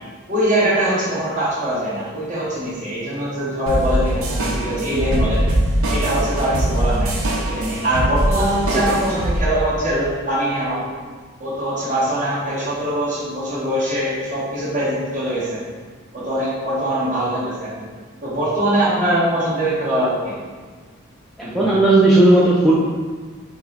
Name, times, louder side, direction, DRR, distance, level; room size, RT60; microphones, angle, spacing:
voice 1, 0.3-5.4 5.9-7.1 7.5-10.8 11.4-15.6 16.1-17.9 18.2-20.5 21.4-21.7, right 1 dB, 35° right, -9 dB, 1.4 m, -22 dB
sound 1, 3.7-9.4, right 1 dB, 80° right, 0.7 m, -21 dB
voice 2, 21.4-22.8, right 2 dB, ahead, -8 dB, 0.4 m, -14 dB
5.7 x 2.2 x 4.1 m, 1.5 s
head